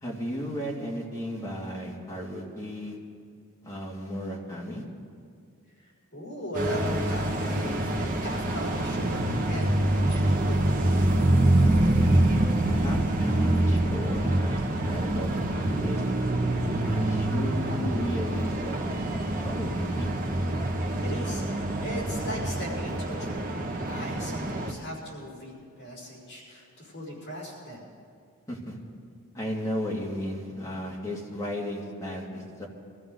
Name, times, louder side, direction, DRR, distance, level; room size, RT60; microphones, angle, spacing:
voice 1, 0.0-3.0 3.6-4.8 12.1-12.4 12.8-16.0 16.8-19.0 19.4-20.1 28.5-28.8 29.3-32.7, equal, 15° left, -4 dB, 2.2 m, -34 dB
voice 2, 5.7-10.7 21.0-21.4 21.8-23.5 23.8-27.9, equal, 50° left, -3 dB, 5.3 m, -38 dB
sound 1, 6.5-24.7, right 1 dB, 40° right, 1.3 m, -26 dB
23.5 x 14.5 x 3.9 m, 2.3 s
head